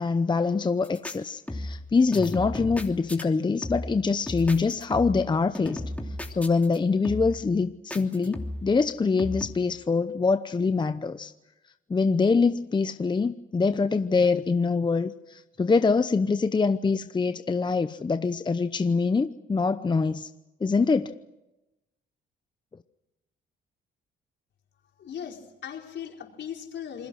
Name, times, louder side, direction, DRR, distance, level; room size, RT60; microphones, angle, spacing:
voice 1, 0.0-5.8 6.3-11.3 11.9-20.3 20.6-21.1, left 4 dB, 20° left, 11 dB, 0.8 m, -24 dB
sound 1, 0.8-1.2 1.5-1.9 2.1-3.2 3.6-4.0 4.3-5.3 5.5-6.8 7.0-7.4 7.9-8.7 9.2-9.5, left 1 dB, 5° left, 3.0 m, -34 dB
voice 2, 25.0-27.1, left 8 dB, 65° left, 1 dB, 4.9 m, -38 dB
28.0 x 21.0 x 6.4 m, 0.98 s
cardioid pair, 90°, 20 cm